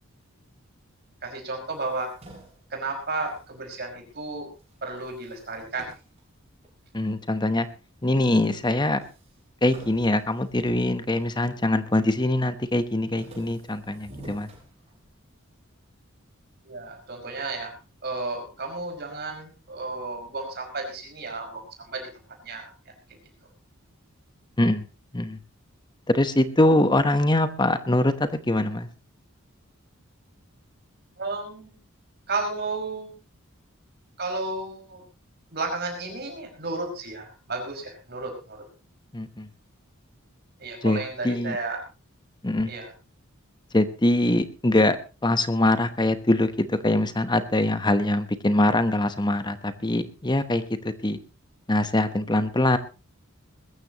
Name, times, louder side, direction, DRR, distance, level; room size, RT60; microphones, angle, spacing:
voice 1, 1.2-2.1 2.7-4.5 4.8-5.9 16.6-17.7 18.0-22.1 22.4-22.7 31.2-31.8 32.3-33.1 34.2-35.0 35.5-38.7 40.6-41.8 42.7-42.9, right 3 dB, 50° right, 2 dB, 5.6 m, -33 dB
sound 1, 1.6-4.3 4.6-7.1 7.7-8.4 8.6-8.7 9.0-11.6 12.0-12.4 12.8-15.4, right 1 dB, 30° right, 7.2 m, -50 dB
voice 2, 6.9-7.7 8.0-9.0 9.6-14.5 24.6-24.8 25.1-25.4 26.1-28.9 39.1-39.5 40.8-41.6 42.4-42.7 43.7-45.0 45.2-51.2 51.7-52.8, left 1 dB, 20° left, 11 dB, 1.0 m, -23 dB
21.5 x 14.0 x 3.0 m, 0.32 s
head